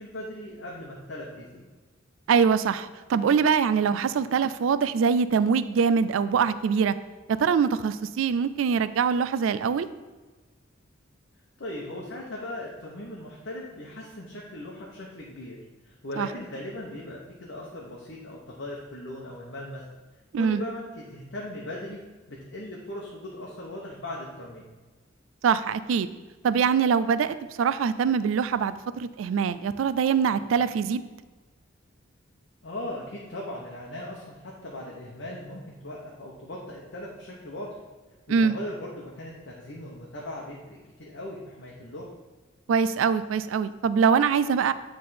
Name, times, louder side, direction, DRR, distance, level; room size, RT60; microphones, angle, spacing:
voice 1, 0.0-1.6 11.6-15.6 15.8-19.8 20.3-22.0 22.3-24.7 32.6-37.8 38.3-42.1, left 1 dB, 65° left, -3 dB, 0.9 m, -38 dB
voice 2, 2.3-6.9 7.3-9.9 16.2-16.3 20.3-20.6 25.4-26.1 26.4-31.0 38.3-38.5 42.7-44.7, right 6 dB, 80° right, 14 dB, 0.3 m, -23 dB
8.7 x 3.4 x 4.2 m, 1.3 s
head